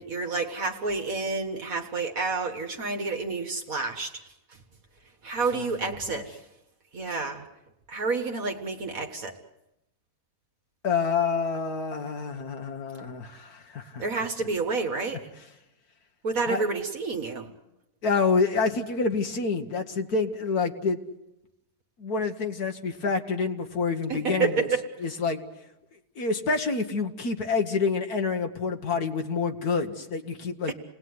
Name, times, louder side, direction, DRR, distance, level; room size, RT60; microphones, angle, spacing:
voice 1, 0.0-4.2 5.2-6.4 6.9-7.5 7.9-9.4 14.0-15.3 16.2-17.5 24.1-24.8 30.7-30.8, right 4 dB, 60° right, 4 dB, 1.9 m, -29 dB
voice 2, 10.8-14.0 16.5-16.6 18.0-21.0 22.0-24.5 25.0-25.4 26.2-30.7, left 4 dB, 70° left, 5 dB, 1.9 m, -27 dB
29.0 x 19.0 x 9.6 m, 0.91 s
omnidirectional pair, 1.7 m